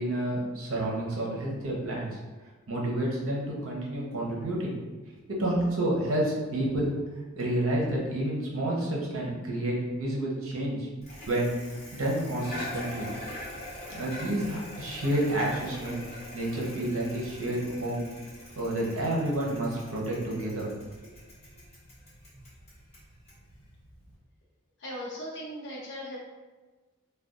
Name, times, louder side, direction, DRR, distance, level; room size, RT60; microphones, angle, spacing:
voice 1, 0.0-2.1 2.7-4.8 5.3-6.9 7.4-10.9 11.3-11.6 11.9-13.1 13.9-16.0 16.3-18.0 18.5-20.7 21.0-21.1, right 1 dB, 70° right, -3 dB, 0.8 m, -29 dB
Bicycle, 11.0-24.1, left 1 dB, 30° left, 1.0 m, -43 dB
voice 2, 24.8-26.2, equal, 55° left, -5 dB, 0.6 m, -38 dB
2.5 x 2.3 x 3.6 m, 1.3 s
head